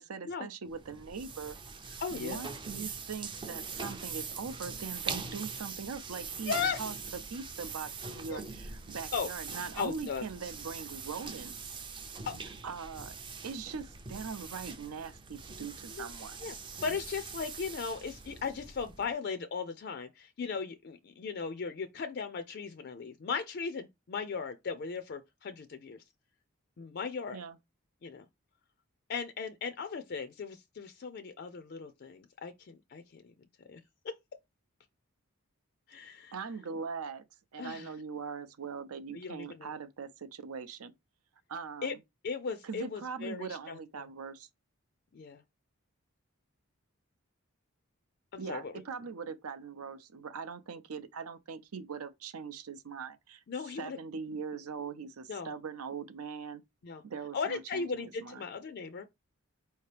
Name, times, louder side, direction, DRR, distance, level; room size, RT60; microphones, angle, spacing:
voice 1, 0.0-1.6 1.9-6.9 7.3-11.8 12.6-13.1 13.4-16.4 27.3-27.6 36.3-37.2 37.5-40.9 41.5-42.0 42.6-44.5 48.4-56.6 57.0-58.4, right 5 dB, 80° right, 0.6 m, -41 dB
sound 1, 0.7-19.1, right 5 dB, 20° right, 0.4 m, -42 dB
voice 2, 2.0-2.4 2.7-2.9 3.8-3.9 6.5-6.9 8.3-8.4 9.1-9.3 9.8-10.2 12.3-12.4 15.9-16.1 16.4-16.6 16.8-26.0 26.8-27.4 28.0-28.3 29.1-33.3 33.7-33.8 34.0-34.2 35.9-36.3 37.6-37.9 39.1-39.7 41.8-41.9 42.2-44.1 45.1-45.4 48.3-48.8 53.5-54.0 55.3-55.5 56.8-57.0 57.3-59.0, left 5 dB, 45° left, 0.4 m, -37 dB
4.5 x 2.8 x 3.3 m
head